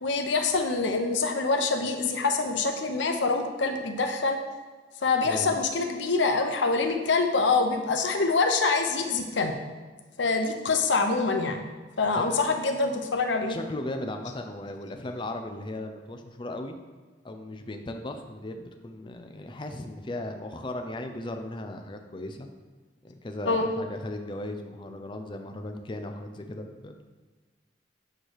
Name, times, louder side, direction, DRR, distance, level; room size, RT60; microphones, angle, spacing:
voice 1, 0.0-4.4 5.0-9.5 10.2-11.7 12.0-13.6 23.5-23.7, left 4 dB, 90° left, 5 dB, 0.8 m, -25 dB
voice 2, 5.2-5.6 12.2-12.3 13.5-16.8 17.2-22.5 23.0-27.0, left 1 dB, 25° left, 5 dB, 0.5 m, -37 dB
8.7 x 3.2 x 6.5 m, 1.4 s
head